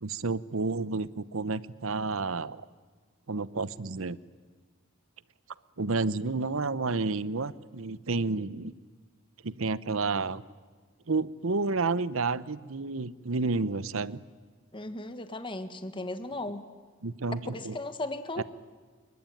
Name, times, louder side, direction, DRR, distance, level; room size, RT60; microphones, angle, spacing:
voice 1, 0.0-2.6 3.3-4.2 5.8-8.7 9.4-10.4 11.1-14.2 17.0-17.8 18.4-18.5, right 3 dB, 70° right, 17 dB, 0.9 m, -30 dB
voice 2, 14.7-16.7 17.5-18.4, left 2 dB, 25° left, 9 dB, 1.6 m, -36 dB
27.0 x 23.5 x 9.2 m, 1.5 s
head